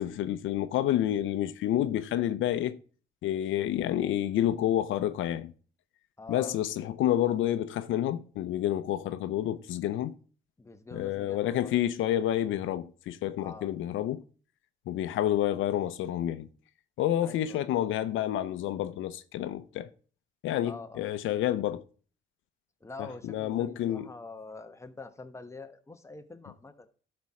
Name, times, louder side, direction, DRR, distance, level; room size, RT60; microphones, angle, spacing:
voice 1, 0.0-2.8 3.2-5.5 6.3-10.1 10.9-14.2 14.9-16.5 17.0-19.9 20.4-21.8 23.2-24.1, left 12 dB, 80° left, 0.6 m, -29 dB
voice 2, 6.2-6.6 10.6-11.8 13.4-13.7 17.2-17.6 20.6-21.1 22.8-26.9, left 3 dB, 15° left, 1.1 m, -45 dB
12.0 x 4.3 x 4.8 m
cardioid pair, 90°, 20 cm